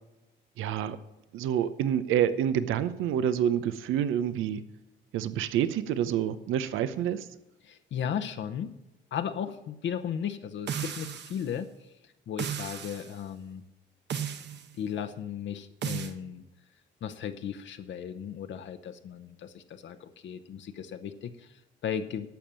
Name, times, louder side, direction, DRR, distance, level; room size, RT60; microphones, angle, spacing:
voice 1, 0.6-1.0 1.3-4.6 5.1-7.3, right 9 dB, 90° right, 14 dB, 0.7 m, -27 dB
voice 2, 7.6-8.7 9.1-11.7 12.3-13.6 14.8-16.4 17.0-22.3, left 8 dB, 70° left, 8 dB, 0.8 m, -36 dB
sound 1, 10.7-11.5 12.4-13.1 14.1-14.7 15.8-16.1, right 8 dB, 60° right, 1.0 m, -34 dB
11.5 x 7.1 x 7.4 m, 0.94 s
cardioid pair, 90°, 20 cm